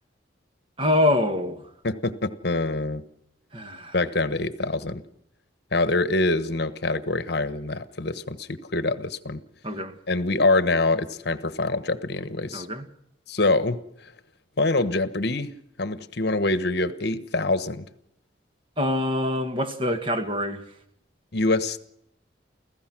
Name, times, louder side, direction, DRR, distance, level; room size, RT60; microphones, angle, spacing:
voice 1, 0.8-1.7 3.5-4.0 9.6-10.0 12.5-12.9 18.8-20.7, left 1 dB, 30° right, 1.8 m, -25 dB
voice 2, 1.8-3.0 3.9-5.0 5.7-9.4 10.1-12.7 13.3-13.8 14.6-15.5 15.8-17.8 21.3-21.8, left 2 dB, 60° left, 1.2 m, -25 dB
29.5 x 15.5 x 6.1 m
head